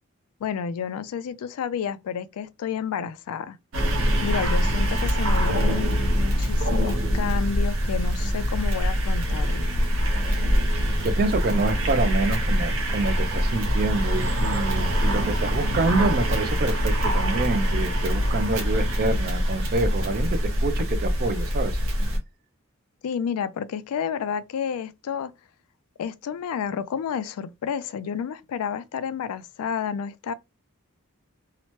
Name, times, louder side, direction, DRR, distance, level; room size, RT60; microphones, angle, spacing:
voice 1, 0.4-3.6 4.2-9.7 23.0-25.3 26.0-30.3, left 7 dB, 85° left, 0.3 m, -30 dB
sound 1, 3.7-22.2, equal, 65° right, 0.7 m, -24 dB
voice 2, 11.0-21.8, right 3 dB, 45° right, 0.3 m, -27 dB
2.8 x 2.0 x 3.0 m
head